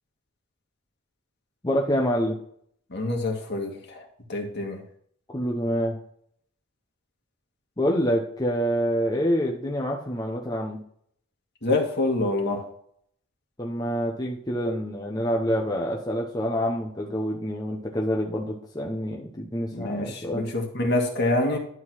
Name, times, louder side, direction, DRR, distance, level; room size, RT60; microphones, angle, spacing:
voice 1, 1.6-2.4 5.3-6.0 7.8-10.8 13.6-20.5, equal, 20° left, -1 dB, 0.9 m, -27 dB
voice 2, 2.9-4.0 4.3-4.8 11.6-12.7 19.7-21.6, left 2 dB, 50° left, 2 dB, 1.8 m, -26 dB
11.5 x 3.9 x 6.2 m, 0.64 s
head